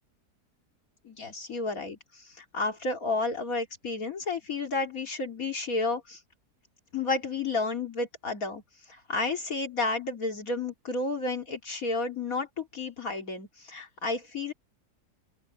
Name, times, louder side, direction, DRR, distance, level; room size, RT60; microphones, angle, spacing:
voice 1, 1.0-6.2 6.9-8.6 8.9-14.5, left 3 dB, 60° left, 3.2 m, -31 dB
open air
omnidirectional pair, 1.7 m